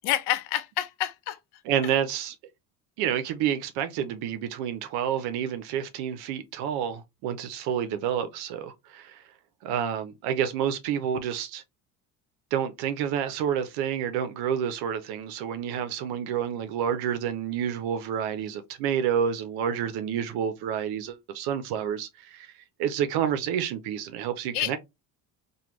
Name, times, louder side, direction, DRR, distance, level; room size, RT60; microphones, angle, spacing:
voice 1, 0.0-1.4 24.5-24.8, left 13 dB, 85° left, 0.6 m, -28 dB
voice 2, 1.6-2.3 3.0-9.2 9.6-11.6 12.5-24.8, right 9 dB, 80° right, 0.6 m, -29 dB
3.0 x 2.2 x 3.3 m
cardioid pair, 130°, 38 cm